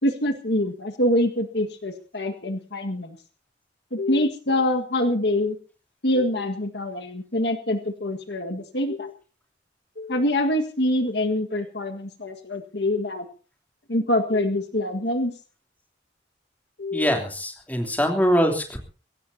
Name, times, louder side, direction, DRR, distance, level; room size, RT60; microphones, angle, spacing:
voice 1, 0.0-3.2 3.9-5.6 6.0-9.1 10.0-13.3 13.9-15.3 16.8-17.1, left 1 dB, 65° left, 5 dB, 1.7 m, -25 dB
voice 2, 16.9-18.8, equal, 10° left, 3 dB, 3.4 m, -23 dB
23.0 x 17.0 x 2.8 m, 0.36 s
head